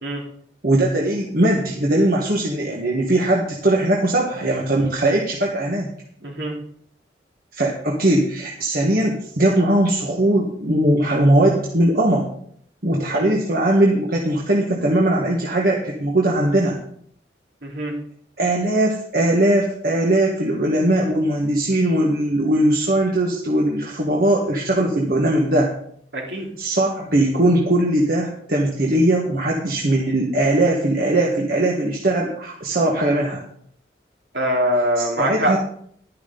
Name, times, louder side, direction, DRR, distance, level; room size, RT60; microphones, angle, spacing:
voice 1, 0.6-5.9 7.5-12.3 12.8-16.8 18.4-25.7 26.6-33.4 35.0-35.6, right 1 dB, 55° right, -2 dB, 1.6 m, -20 dB
voice 2, 6.2-6.5 13.1-13.3 17.6-17.9 26.1-26.5 34.3-35.5, right 1 dB, 70° right, -1 dB, 3.3 m, -23 dB
12.0 x 11.0 x 4.0 m, 0.64 s
head